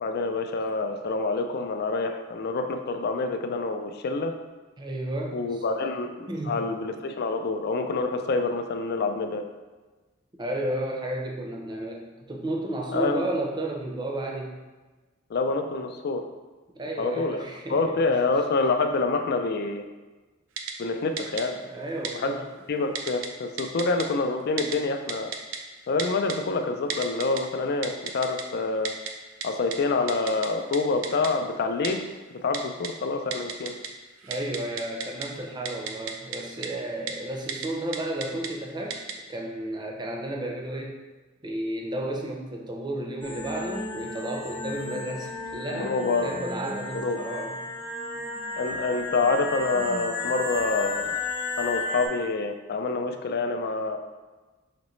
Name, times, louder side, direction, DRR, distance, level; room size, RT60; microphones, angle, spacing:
voice 1, 0.0-4.3 5.3-9.4 12.9-13.2 15.3-16.2 17.0-17.4 17.7-19.8 20.8-21.6 22.1-22.3 22.7-25.3 25.9-28.9 29.4-32.0 32.4-33.7 45.8-46.3 46.9-47.2 48.6-51.1 51.6-54.0, left 3 dB, 55° left, 6 dB, 0.4 m, -27 dB
voice 2, 4.8-5.9 6.3-6.6 10.4-14.5 16.7-18.0 21.6-22.4 34.2-39.0 39.3-41.0 41.4-47.6, right 1 dB, 20° right, 0 dB, 0.6 m, -32 dB
Typing, 20.6-20.7 21.2-21.4 22.0-22.1 22.9-23.3 23.6-24.0 24.6-24.8 25.1-25.6 26.0-26.3 26.9-27.4 27.8-28.4 28.8-29.1 29.4-29.5 29.7-29.8 30.1-30.5 30.7-30.8 31.0-31.3 31.8-31.9 32.5-32.9 33.3-33.9 34.2-35.3 35.6-36.4 36.6-36.7 37.1-37.2 37.5-37.7 37.9-38.5 38.9-39.1, right 7 dB, 85° right, 0.5 m, -32 dB
sound 1, 43.2-52.1, left 2 dB, 25° left, 0.7 m, -33 dB
5.1 x 3.0 x 3.1 m, 1.2 s
head